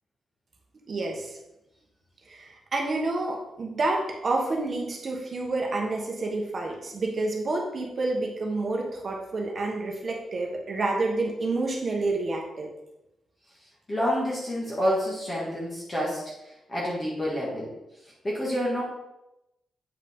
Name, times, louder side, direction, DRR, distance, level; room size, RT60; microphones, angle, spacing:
voice 1, 0.9-1.4 2.3-12.7, right 2 dB, 35° right, 0 dB, 1.2 m, -29 dB
voice 2, 13.9-16.2 16.7-17.7 18.2-18.8, equal, 20° left, -5 dB, 1.7 m, -28 dB
8.4 x 5.5 x 3.6 m, 0.90 s
wide cardioid pair, 165°, 0 cm